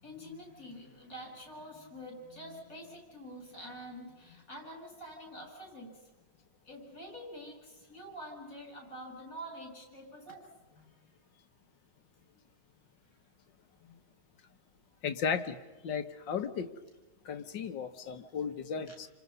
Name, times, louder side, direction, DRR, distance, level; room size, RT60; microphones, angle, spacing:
voice 1, 0.0-6.0 6.7-10.9 13.8-14.0 18.9-19.0, equal, 45° left, 2 dB, 7.5 m, -47 dB
voice 2, 15.0-15.6 15.8-16.7 17.3-19.1, left 6 dB, 75° left, 8 dB, 2.0 m, -35 dB
29.0 x 26.0 x 5.5 m, 1.2 s
omnidirectional pair, 2.0 m